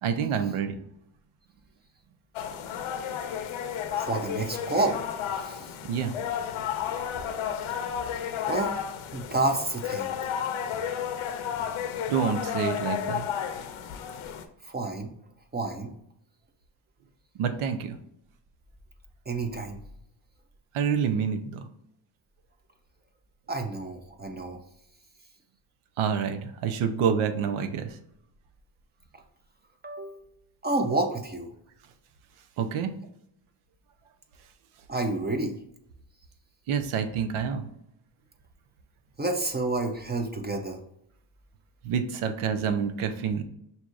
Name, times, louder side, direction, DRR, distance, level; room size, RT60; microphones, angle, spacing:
voice 1, 0.0-0.8 5.8-6.1 12.1-13.3 17.4-18.0 20.7-21.7 26.0-28.0 32.6-32.9 36.7-37.7 41.8-43.4, right 7 dB, 85° right, 9 dB, 0.7 m, -27 dB
sound 1, 2.3-14.4, left 8 dB, 80° left, 0.7 m, -32 dB
voice 2, 4.0-5.0 5.4-5.7 8.5-8.8 9.1-10.2 14.6-15.1 15.5-15.9 19.3-19.8 23.5-24.6 29.8-30.2 30.6-31.5 34.9-35.6 39.2-40.8, right 2 dB, 20° right, 4 dB, 0.6 m, -29 dB
6.0 x 2.8 x 2.4 m, 0.77 s
cardioid pair, 95°, 48 cm